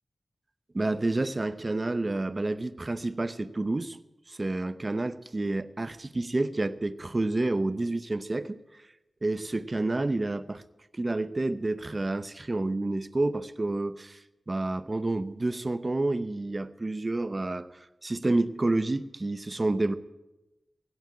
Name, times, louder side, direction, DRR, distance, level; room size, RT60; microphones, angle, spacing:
voice 1, 0.7-4.0 4.3-8.6 9.2-10.6 10.9-14.2 14.5-17.7 18.0-19.9, right 2 dB, 30° right, 14 dB, 0.7 m, -29 dB
16.5 x 8.1 x 9.7 m, 1.0 s
wide cardioid pair, 110°, 0 cm